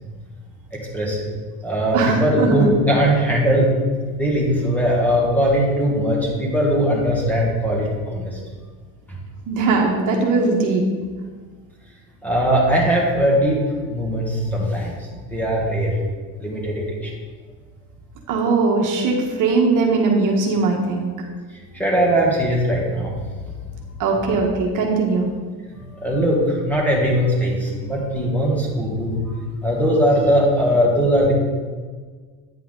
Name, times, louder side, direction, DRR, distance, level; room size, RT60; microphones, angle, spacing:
voice 1, 0.7-1.3 1.6-3.7 4.2-8.4 9.1-9.2 12.2-13.6 13.9-15.0 15.3-16.0 16.4-17.1 21.7-23.1 23.4-23.5 25.7-29.2 29.6-31.3, equal, 5° left, -3 dB, 2.0 m, -20 dB
voice 2, 1.9-2.7 9.5-10.8 18.3-21.1 24.0-25.3, right 3 dB, 50° right, 0 dB, 1.4 m, -20 dB
9.4 x 5.7 x 3.9 m, 1.5 s
supercardioid pair, 120°, 39 cm